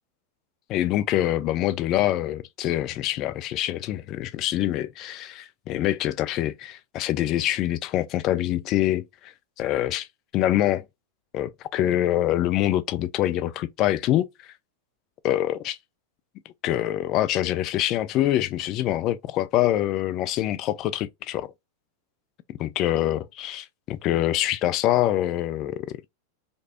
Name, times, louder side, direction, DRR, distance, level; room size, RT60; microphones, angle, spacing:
voice 1, 0.7-10.1 10.3-10.8 11.3-14.5 15.2-15.8 16.6-21.5 22.6-26.0, left 13 dB, 35° left, 0.4 m, -25 dB
5.2 x 2.0 x 2.3 m
figure-of-eight pair, 90°, 0 cm